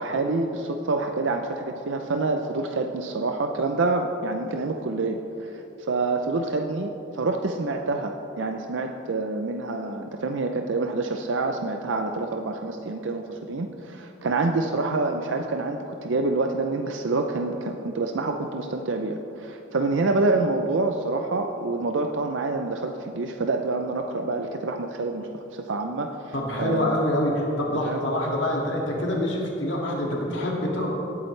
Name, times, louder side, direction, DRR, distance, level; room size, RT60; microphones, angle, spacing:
voice 1, 0.0-26.9 27.8-28.0, right 3 dB, 70° right, 5 dB, 0.5 m, -27 dB
voice 2, 26.3-30.9, left 1 dB, 70° left, -2 dB, 2.2 m, -26 dB
18.0 x 8.6 x 3.3 m, 2.9 s
head